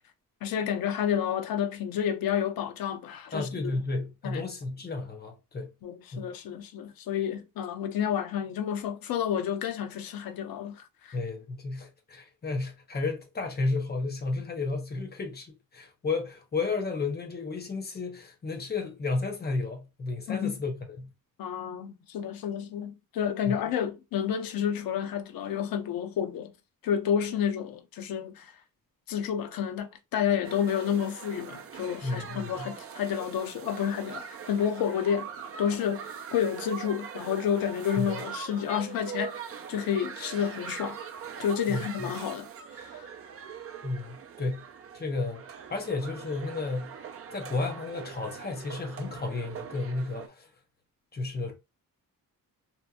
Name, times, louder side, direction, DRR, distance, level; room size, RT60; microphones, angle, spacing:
voice 1, 0.4-3.7 4.2-4.4 5.8-11.2 20.3-20.5 21.4-26.5 26.8-28.5 29.1-35.3 35.6-41.0 41.4-42.5 42.8-43.1, left 8 dB, 85° left, 0.6 m, -30 dB
voice 2, 3.3-5.7 6.1-6.3 11.1-21.1 23.5-23.6 32.0-32.7 38.0-38.1 41.7-42.1 43.8-44.6 44.9-46.9 47.3-50.5 51.1-51.5, left 3 dB, 30° left, 0.7 m, -32 dB
sound 1, 30.4-50.3, right 7 dB, 45° right, 0.4 m, -42 dB
2.9 x 2.5 x 2.2 m
wide cardioid pair, 170°, 34 cm